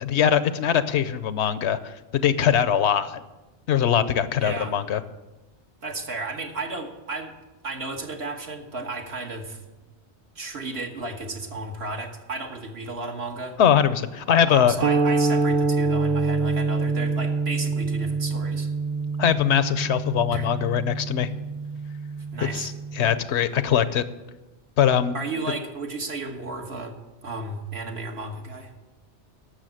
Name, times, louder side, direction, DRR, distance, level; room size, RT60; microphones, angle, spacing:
voice 1, 0.0-3.2 3.7-5.0 13.6-14.7 19.2-21.3 22.5-22.7 23.0-24.0 24.8-25.1, left 9 dB, 80° left, 13 dB, 0.9 m, -22 dB
voice 2, 4.4-4.8 5.8-7.3 7.6-9.6 10.3-13.6 14.5-18.7 20.3-20.5 22.3-22.7 25.1-26.9 27.2-28.7, right 3 dB, 65° right, 3 dB, 1.7 m, -33 dB
sound 1, 14.8-23.2, right 3 dB, 45° right, 0.4 m, -26 dB
11.5 x 7.1 x 7.7 m, 1.1 s
omnidirectional pair, 1.1 m